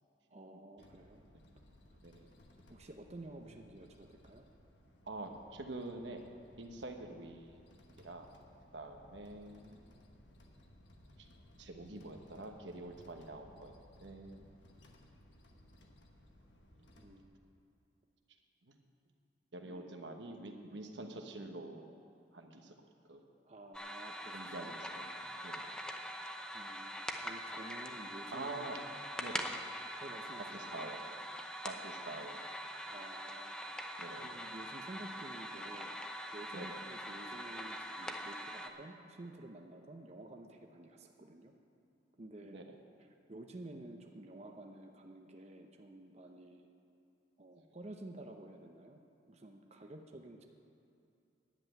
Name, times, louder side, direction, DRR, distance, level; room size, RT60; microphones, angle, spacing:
voice 1, 0.3-1.2 2.7-4.4 17.0-17.6 19.6-19.9 23.5-24.8 26.5-28.7 30.0-30.6 32.9-33.6 34.2-35.9 36.3-41.5 42.2-42.6 43.0-46.7 47.4-49.0 49.3-50.4, right 1 dB, 40° right, 3 dB, 0.8 m, -51 dB
sound 1, 0.8-17.2, left 1 dB, 80° left, 1.3 m, -61 dB
voice 2, 5.0-7.6 8.0-8.3 8.7-9.8 11.2-11.3 11.6-13.7 14.0-14.5 16.8-16.9 18.7-18.8 19.5-21.9 22.3-22.7 23.0-23.2 24.3-25.1 25.4-25.7 28.3-28.8 29.2-29.5 30.5-31.0 31.6-32.4 34.0-34.3 36.5-36.8 42.5-42.7 47.6-47.7, right 2 dB, 90° right, 4 dB, 1.2 m, -46 dB
sound 2, 23.7-38.7, equal, 5° left, 0.7 m, -43 dB
10.5 x 7.8 x 9.1 m, 2.7 s
head